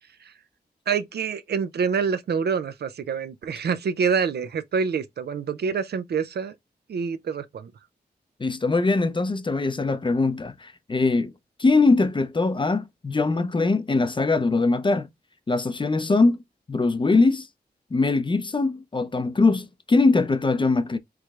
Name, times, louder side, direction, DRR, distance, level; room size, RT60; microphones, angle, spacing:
voice 1, 0.9-6.5 6.9-7.7, right 6 dB, 75° right, 0.5 m, -26 dB
voice 2, 8.4-11.3 11.6-15.1 15.5-16.4 16.7-17.5 17.9-21.0, left 3 dB, 30° left, 0.5 m, -22 dB
4.7 x 3.1 x 2.3 m
wide cardioid pair, 90°, 17 cm